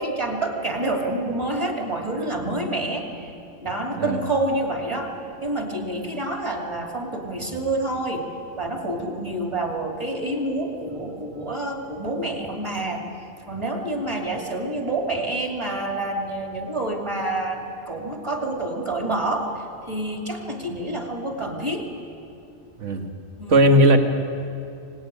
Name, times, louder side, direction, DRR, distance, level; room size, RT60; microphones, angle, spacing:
voice 1, 0.0-3.3 3.6-8.3 8.6-13.1 13.5-21.9 23.4-23.8, right 2 dB, 20° right, 2 dB, 2.9 m, -28 dB
voice 2, 22.8-23.1 23.5-24.0, right 1 dB, 65° right, 5 dB, 2.0 m, -16 dB
25.0 x 19.5 x 9.9 m, 2.6 s
omnidirectional pair, 1.3 m